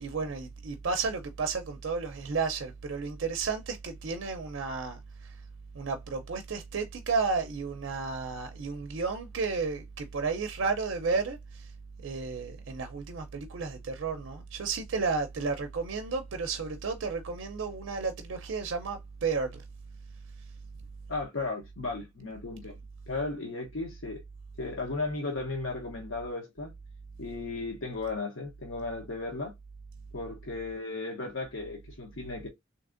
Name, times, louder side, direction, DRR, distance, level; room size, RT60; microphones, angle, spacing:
voice 1, 0.0-5.3 5.7-11.7 12.0-19.6, right 4 dB, 65° right, 0.5 m, -32 dB
voice 2, 21.1-22.8 23.1-24.2 24.6-26.7 27.2-29.5 30.1-32.5, left 3 dB, 70° left, 0.9 m, -35 dB
3.5 x 2.8 x 2.4 m
head